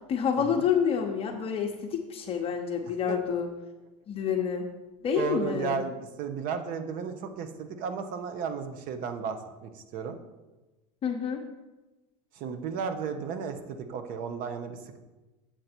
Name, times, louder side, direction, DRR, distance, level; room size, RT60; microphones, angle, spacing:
voice 1, 0.1-3.5 4.1-4.7 5.0-5.8 11.0-11.4, left 7 dB, 35° left, 1 dB, 0.8 m, -28 dB
voice 2, 5.1-10.2 12.4-15.0, right 6 dB, 55° right, 8 dB, 1.0 m, -34 dB
7.5 x 6.7 x 4.4 m, 1.1 s
supercardioid pair, 120°, 17 cm